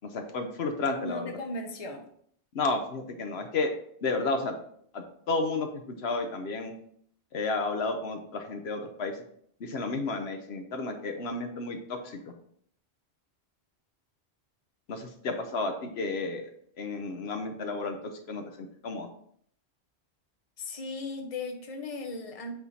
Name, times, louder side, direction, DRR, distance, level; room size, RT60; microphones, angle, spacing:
voice 1, 0.0-1.3 2.5-3.7 4.0-4.5 4.9-6.7 7.3-9.2 9.6-12.2 14.9-16.4 16.8-19.1, left 3 dB, 70° left, 6 dB, 1.0 m, -32 dB
voice 2, 1.0-2.0 20.6-22.5, left 2 dB, 35° left, 4 dB, 0.9 m, -37 dB
8.3 x 3.6 x 4.1 m, 0.65 s
omnidirectional pair, 1.1 m